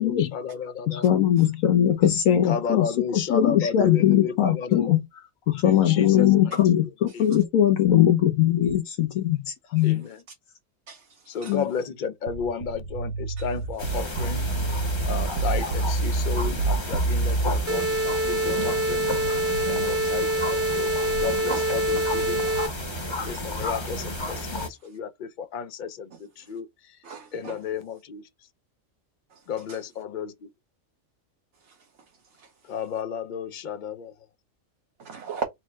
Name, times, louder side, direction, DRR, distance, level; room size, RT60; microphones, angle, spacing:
voice 1, 0.0-1.0 2.3-5.0 5.6-6.6 7.1-7.2 9.8-10.2 11.3-14.5 15.0-19.0 19.7-22.5 23.1-26.7 27.3-28.2 29.5-30.5 32.7-34.1, left 6 dB, 60° left, 0.5 m, -33 dB
voice 2, 0.9-5.0 5.5-10.0 11.5-11.6, left 11 dB, 85° left, 1.1 m, -21 dB
voice 3, 10.9-11.5 13.4-13.5 21.5-21.6 21.9-22.1 22.8-23.5 24.4-24.5 27.0-27.6 29.3-29.4 29.7-29.8 31.7-31.8 32.4-32.5 35.0-35.4, right 5 dB, 60° right, 1.1 m, -38 dB
sound 1, 12.3-17.6, right 3 dB, 85° right, 1.2 m, -27 dB
sound 2, 13.8-24.7, left 1 dB, 25° left, 0.8 m, -32 dB
sound 3, 17.7-22.7, right 1 dB, 15° right, 0.7 m, -25 dB
4.5 x 2.1 x 4.4 m
omnidirectional pair, 1.4 m